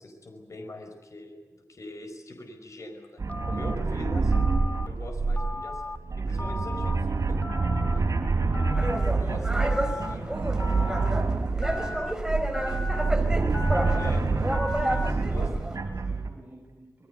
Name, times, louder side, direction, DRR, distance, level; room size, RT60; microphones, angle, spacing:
voice 1, 0.0-3.2 3.5-4.5 4.8-7.4 7.9-8.1 9.2-9.7 10.0-10.2 13.9-14.6 15.3-15.5, left 1 dB, 70° left, 5 dB, 5.0 m, -42 dB
sound 1, 3.2-16.3, right 3 dB, 85° right, 3.7 m, -27 dB
Telephone, 3.3-3.8 4.3-4.9 5.4-6.0 6.4-7.0 7.4-8.0 8.5-9.1 9.6-10.1 10.6-11.1 11.6-12.1 12.5-13.1 13.5-14.1 14.5-15.1, left 2 dB, 30° left, 1.6 m, -37 dB
voice 2, 8.1-13.5 13.8-17.1, right 1 dB, 30° right, -2 dB, 7.2 m, -48 dB
sound 2, 8.8-15.8, right 1 dB, 10° right, 4.4 m, -31 dB
27.0 x 21.5 x 8.2 m, 1.1 s
wide cardioid pair, 75°, 5 cm